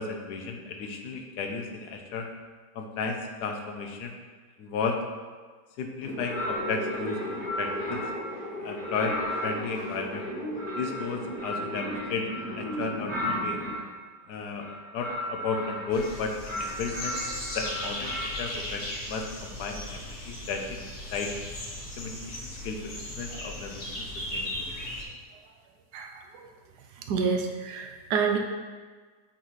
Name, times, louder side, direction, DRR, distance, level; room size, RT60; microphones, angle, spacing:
voice 1, 0.0-2.3 2.7-4.1 4.6-5.0 5.8-8.0 8.6-10.2 10.8-12.3 12.5-13.6 14.3-14.7 14.9-17.2 17.5-20.8 21.1-21.3 22.0-24.0 24.3-24.7, left 4 dB, 75° left, 3 dB, 1.2 m, -34 dB
sound 1, 6.0-13.8, equal, 30° left, 1.0 m, -36 dB
sound 2, 6.2-8.3 8.8-13.9 14.5-16.1 16.5-18.4, equal, 45° right, 1.3 m, -36 dB
sound 3, 15.9-25.0, left 1 dB, 50° left, 1.4 m, -37 dB
voice 2, 27.1-28.4, right 5 dB, 75° right, 3 dB, 1.2 m, -27 dB
8.2 x 4.0 x 3.1 m, 1.5 s
omnidirectional pair, 1.8 m